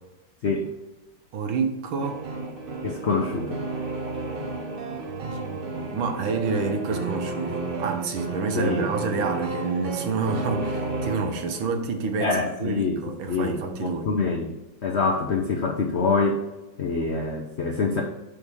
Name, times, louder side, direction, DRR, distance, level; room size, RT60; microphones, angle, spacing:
voice 1, 1.3-2.2 3.1-3.2 5.0-14.1, right 4 dB, 90° right, 5 dB, 1.8 m, -28 dB
sound 1, 2.0-11.8, right 3 dB, 55° right, 0.6 m, -32 dB
voice 2, 2.8-3.6 8.5-8.9 12.2-13.0 13.3-14.6 14.8-16.4 16.8-18.0, left 4 dB, 70° left, 1 dB, 0.6 m, -25 dB
6.3 x 5.5 x 3.5 m, 1.1 s
omnidirectional pair, 2.2 m